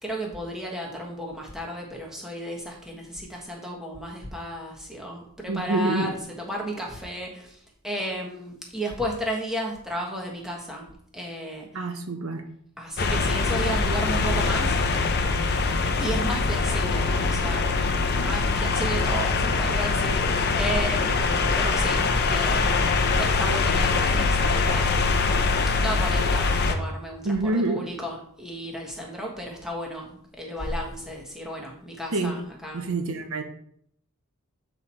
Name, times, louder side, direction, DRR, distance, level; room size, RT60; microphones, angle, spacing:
voice 1, 0.0-10.9 11.1-11.9 12.8-15.0 16.0-17.7 18.1-25.4 25.8-32.8, right 1 dB, ahead, -1 dB, 1.3 m, -34 dB
voice 2, 5.5-6.1 11.7-12.4 27.2-27.8 32.1-32.3 32.7-33.4, right 2 dB, 65° right, 6 dB, 0.7 m, -26 dB
sound 1, 13.0-26.7, left 4 dB, 45° left, 0.6 m, -23 dB
7.8 x 4.4 x 4.4 m, 0.66 s
head